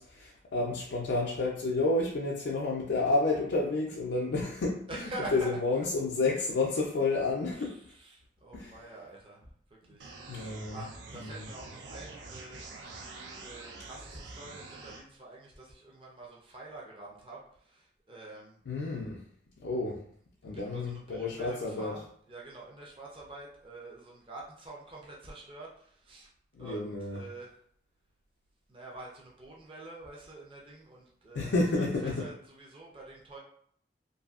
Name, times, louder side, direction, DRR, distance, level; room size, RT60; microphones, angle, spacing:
voice 1, 0.0-4.8 5.3-7.8 8.5-8.7 10.3-10.8 11.1-11.5 18.7-19.2 19.6-20.0 20.4-22.0 26.6-27.2 31.3-32.3, left 3 dB, 85° left, -3 dB, 0.4 m, -30 dB
voice 2, 4.9-5.9 7.6-9.4 9.9-18.6 20.5-26.3 26.6-27.6 28.7-33.4, right 2 dB, 30° right, -3 dB, 0.6 m, -46 dB
sound 1, 10.0-15.0, right 3 dB, 85° right, 0.4 m, -46 dB
2.6 x 2.6 x 2.4 m, 0.62 s
head